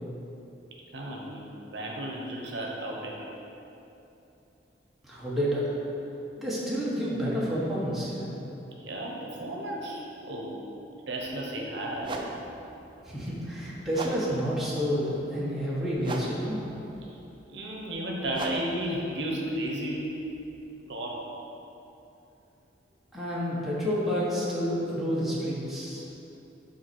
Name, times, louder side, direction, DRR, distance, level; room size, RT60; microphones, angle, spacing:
voice 1, 0.9-1.4 1.7-3.3 8.8-10.6 11.1-12.2 17.5-20.1 20.9-21.3, right 1 dB, 70° right, -1 dB, 0.9 m, -33 dB
voice 2, 5.0-5.7 6.4-8.4 13.1-16.7 23.1-26.0, equal, ahead, -8 dB, 1.3 m, -29 dB
sound 1, 11.2-11.3 12.0-20.8, right 2 dB, 25° right, 0.4 m, -41 dB
5.6 x 4.1 x 6.0 m, 3.0 s
head